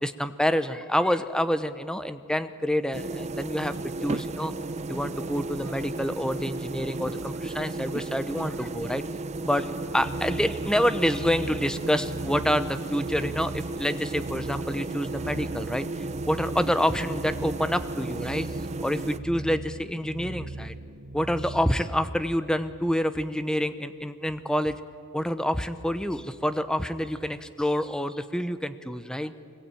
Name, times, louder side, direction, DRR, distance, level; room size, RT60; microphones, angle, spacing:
voice 1, 0.0-3.7 4.0-4.5 4.9-9.0 9.4-9.7 9.9-15.9 16.3-20.7 21.1-24.8 25.1-29.3, equal, 5° left, 11 dB, 0.8 m, -27 dB
sound 1, 2.9-19.2, right 2 dB, 30° right, 0.6 m, -34 dB
sound 2, 9.8-21.9, right 2 dB, 55° right, 0.9 m, -40 dB
sound 3, 20.6-20.7, equal, 20° left, 3.4 m, -58 dB
24.5 x 21.0 x 9.1 m, 2.4 s
head